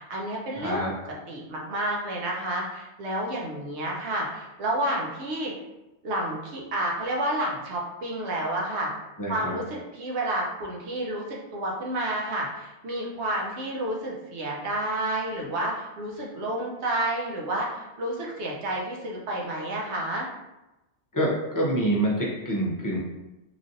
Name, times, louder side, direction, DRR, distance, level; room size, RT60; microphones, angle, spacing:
voice 1, 0.0-5.5 6.0-8.9 9.3-20.3, right 1 dB, 70° right, -2 dB, 1.0 m, -30 dB
voice 2, 0.6-0.9 9.2-9.5 21.1-23.0, right 1 dB, 25° left, -5 dB, 0.4 m, -26 dB
3.1 x 2.5 x 2.6 m, 0.99 s
omnidirectional pair, 1.2 m